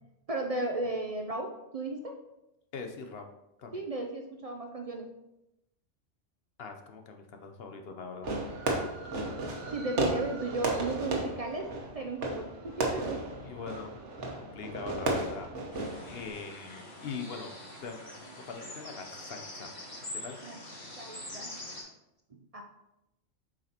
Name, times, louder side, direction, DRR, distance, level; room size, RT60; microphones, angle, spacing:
voice 1, 0.3-2.2 3.7-5.1 8.9-9.0 9.6-13.2 20.4-20.6 21.0-21.5 22.3-22.6, right 2 dB, 55° right, 3 dB, 0.4 m, -35 dB
voice 2, 2.7-3.3 3.6-3.8 6.6-8.3 13.4-13.9 14.4-15.5 16.1-17.5 17.8-18.0 18.5-19.7 20.1-20.4, left 5 dB, 60° left, 5 dB, 0.8 m, -41 dB
Fireworks, 8.2-16.3, right 2 dB, 70° right, 1.3 m, -34 dB
sound 1, 15.7-21.8, left 1 dB, 35° left, 1.6 m, -44 dB
7.4 x 4.9 x 2.9 m, 0.90 s
omnidirectional pair, 1.3 m